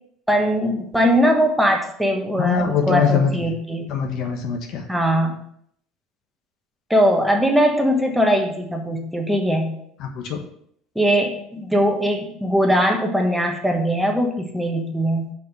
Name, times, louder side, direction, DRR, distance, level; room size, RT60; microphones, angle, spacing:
voice 1, 0.3-4.0 4.9-5.5 6.9-9.7 10.9-15.3, equal, 5° right, 2 dB, 1.3 m, -20 dB
voice 2, 2.4-3.5 3.9-4.8 10.0-10.4, left 6 dB, 60° left, 4 dB, 1.2 m, -22 dB
5.5 x 5.0 x 5.2 m, 0.68 s
supercardioid pair, 90°, 0 cm